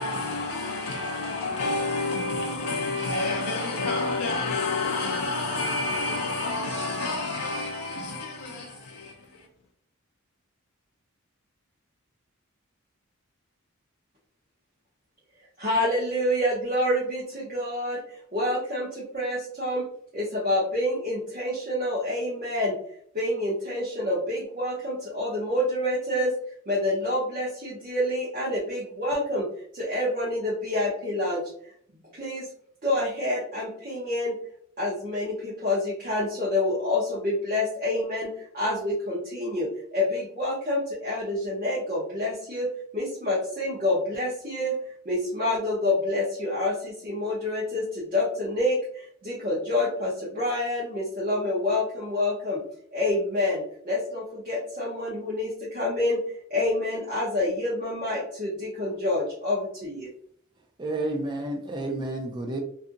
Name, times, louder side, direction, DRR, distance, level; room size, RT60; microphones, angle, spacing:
voice 1, 0.0-9.2, left 3 dB, 85° left, 0.4 m, -29 dB
voice 2, 15.6-19.9 20.1-22.8 23.1-26.3 26.7-29.5 29.7-31.4 31.9-32.5 32.8-34.4 34.8-44.8 45.0-52.6 52.9-56.2 56.5-60.1, left 1 dB, 40° right, 0.7 m, -27 dB
voice 3, 60.8-62.6, right 2 dB, 20° right, 0.3 m, -30 dB
2.6 x 2.5 x 2.5 m
head